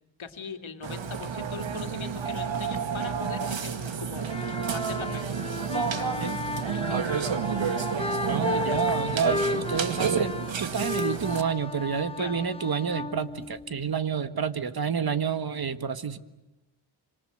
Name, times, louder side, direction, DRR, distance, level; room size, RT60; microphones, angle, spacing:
voice 1, 0.2-4.3 4.7-5.4 5.9-7.2 8.7-8.8 12.2-12.4, left 5 dB, 75° left, 6 dB, 2.6 m, -41 dB
Burping eructation, 0.8-11.4, right 6 dB, 70° right, 2.0 m, -30 dB
sound 1, 4.2-14.0, left 3 dB, 10° left, 1.0 m, -34 dB
voice 2, 8.3-16.2, right 7 dB, 50° right, 11 dB, 1.7 m, -29 dB
26.5 x 26.5 x 7.8 m, 1.0 s
wide cardioid pair, 105°, 47 cm